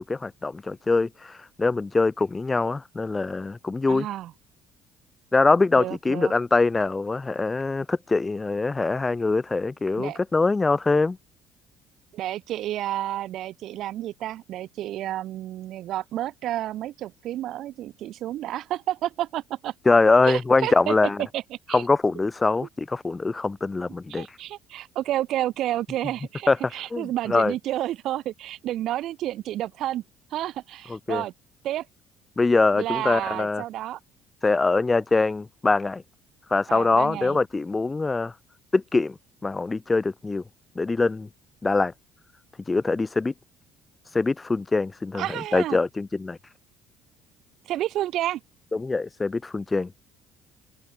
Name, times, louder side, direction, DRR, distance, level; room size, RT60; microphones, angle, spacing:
voice 1, 0.0-4.1 5.3-11.2 19.9-21.2 21.7-24.3 26.5-26.6 26.9-27.5 30.9-31.2 32.4-33.6 34.4-36.0 36.5-38.3 38.7-39.1 39.4-40.4 40.8-41.3 41.6-41.9 42.7-43.3 44.1-46.4 48.7-49.9, left 3 dB, 15° left, 0.4 m, -23 dB
voice 2, 3.9-4.3 5.8-6.3 10.0-10.2 12.1-19.7 20.2-20.9 21.3-21.8 24.1-30.0 30.3-31.3 31.6-31.9 32.7-34.0 36.7-37.4 45.2-45.8 47.7-48.4, right 13 dB, 60° right, 0.6 m, -30 dB
cardioid pair, 125°, 0 cm